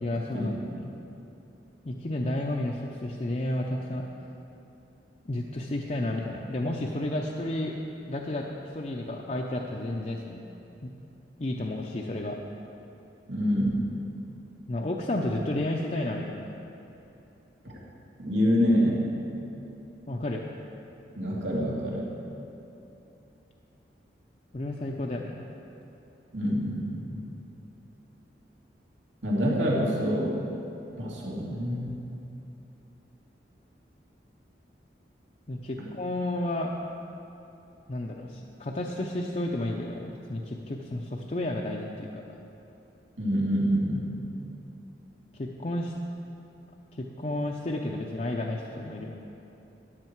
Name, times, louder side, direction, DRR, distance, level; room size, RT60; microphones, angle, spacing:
voice 1, 0.0-0.9 1.8-4.1 5.2-7.8 8.1-10.5 10.8-10.9 11.4-12.4 14.7-16.4 20.1-20.4 24.5-25.4 35.5-36.8 37.9-42.2 45.3-45.9 47.0-49.2, left 1 dB, 40° left, -1 dB, 0.6 m, -32 dB
voice 2, 13.3-13.8 18.2-19.0 21.2-22.1 26.3-27.2 29.2-30.3 31.0-32.0 43.2-44.1, equal, 85° right, -4 dB, 2.4 m, -26 dB
13.5 x 10.0 x 4.6 m, 2.9 s
head